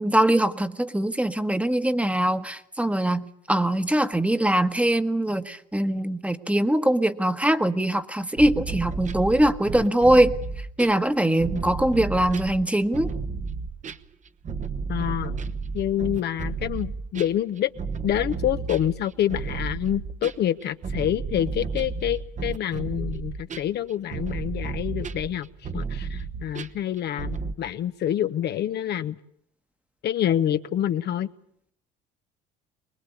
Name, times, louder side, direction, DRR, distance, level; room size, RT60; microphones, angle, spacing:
voice 1, 0.0-13.1, right 1 dB, 5° right, 1.3 m, -22 dB
sound 1, 8.4-27.5, right 4 dB, 35° right, 1.1 m, -32 dB
voice 2, 14.9-15.4 15.7-17.7 18.0-25.5 25.7-29.2 30.0-31.3, left 11 dB, 55° left, 0.9 m, -27 dB
24.0 x 20.5 x 8.4 m
hypercardioid pair, 70°, 20 cm